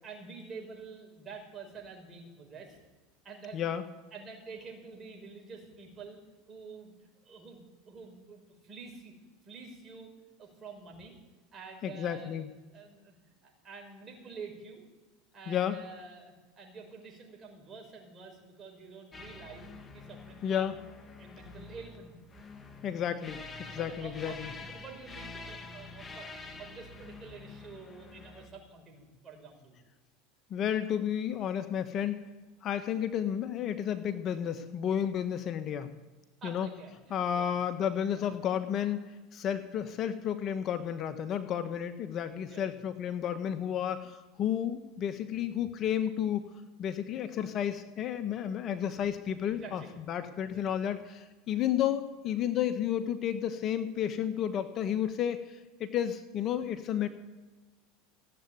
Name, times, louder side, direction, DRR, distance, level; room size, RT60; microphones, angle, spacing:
voice 1, 0.0-2.8 3.2-3.7 4.1-6.2 6.5-7.6 7.8-9.1 9.4-10.1 10.4-11.1 11.5-12.4 12.7-13.2 13.4-14.8 15.3-20.7 21.2-22.1 23.7-29.7 36.4-37.5 38.1-38.2 42.4-42.8 49.4-49.9 50.4-50.6, right 4 dB, 30° right, 0 dB, 6.3 m, -48 dB
voice 2, 3.5-3.8 11.8-12.5 15.5-15.8 20.4-20.7 22.8-24.5 30.5-32.2 32.6-35.9 36.4-36.7 37.1-39.0 39.3-46.5 46.8-49.8 50.1-57.1, left 9 dB, 45° left, 10 dB, 1.2 m, -32 dB
sound 1, 19.1-28.5, left 3 dB, 20° left, 2.1 m, -47 dB
16.5 x 8.1 x 9.3 m, 1.3 s
hypercardioid pair, 90°, 0 cm